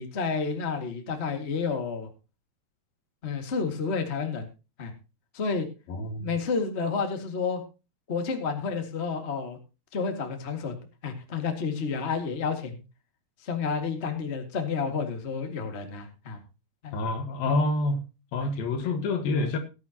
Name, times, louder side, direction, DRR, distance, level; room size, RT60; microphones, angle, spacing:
voice 1, 0.0-2.1 3.2-4.5 4.8-4.9 5.3-5.7 6.2-7.6 8.1-9.6 9.9-10.8 11.0-12.8 13.4-16.4 16.8-16.9, left 5 dB, 30° left, 5 dB, 1.2 m, -30 dB
voice 2, 5.9-6.3 16.9-18.0 18.3-19.6, left 2 dB, 65° left, 7 dB, 3.2 m, -27 dB
18.5 x 10.0 x 2.9 m, 0.30 s
omnidirectional pair, 4.7 m